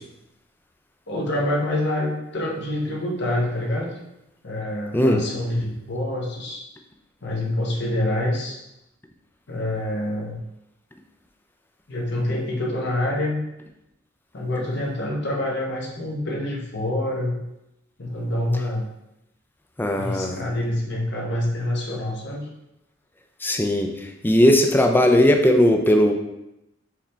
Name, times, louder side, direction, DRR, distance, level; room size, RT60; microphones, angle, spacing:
voice 1, 1.1-3.9 4.4-6.6 7.2-8.6 9.5-10.4 11.9-13.4 14.3-17.4 18.0-18.9 19.9-22.5, left 1 dB, 60° left, -2 dB, 1.0 m, -26 dB
voice 2, 19.8-20.4 23.4-26.1, left 1 dB, 10° left, 4 dB, 0.4 m, -18 dB
4.8 x 3.2 x 3.4 m, 0.87 s
head